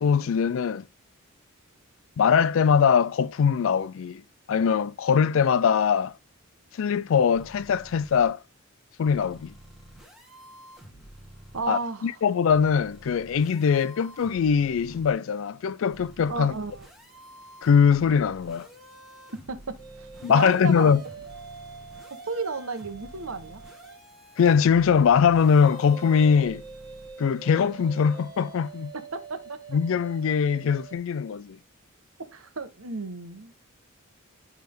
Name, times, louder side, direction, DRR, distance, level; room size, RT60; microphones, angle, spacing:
voice 1, 0.0-0.9 2.2-4.2 4.5-6.1 6.7-8.4 9.0-9.5 11.7-16.5 17.6-18.7 20.2-21.0 24.4-26.6 27.2-28.9 29.7-31.6, left 6 dB, 65° left, 0.3 m, -22 dB
sound 1, 7.3-8.2 9.0-11.6 12.5-15.1 15.9-27.1, right 1 dB, ahead, 1.5 m, -49 dB
voice 2, 11.5-12.2 16.3-16.9 19.5-19.6 20.0-20.9 22.2-23.6 29.1-29.8 32.3-33.5, right 4 dB, 75° right, 1.2 m, -33 dB
sound 2, 19.7-24.1 25.5-31.0, right 5 dB, 20° right, 1.7 m, -45 dB
10.5 x 3.5 x 3.6 m
head